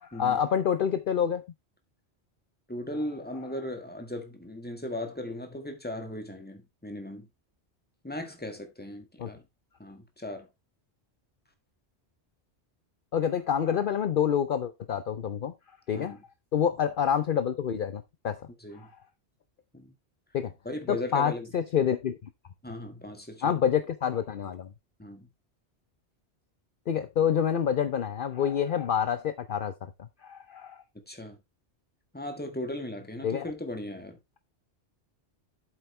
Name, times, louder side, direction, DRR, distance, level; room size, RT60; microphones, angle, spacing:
voice 1, 0.0-1.4 9.2-9.3 13.1-15.5 15.9-16.2 16.5-18.5 18.7-18.9 20.3-20.5 20.9-22.3 23.4-24.7 26.9-29.7 30.0-30.8 33.2-33.5, left 8 dB, 55° left, 0.8 m, -27 dB
voice 2, 2.7-7.3 8.0-9.4 9.8-10.5 15.9-16.2 18.6-18.9 19.7-20.0 20.7-21.5 22.6-23.6 25.0-25.3 31.1-31.4 32.1-34.2, left 1 dB, 10° left, 1.7 m, -37 dB
8.0 x 8.0 x 3.2 m
omnidirectional pair, 1.1 m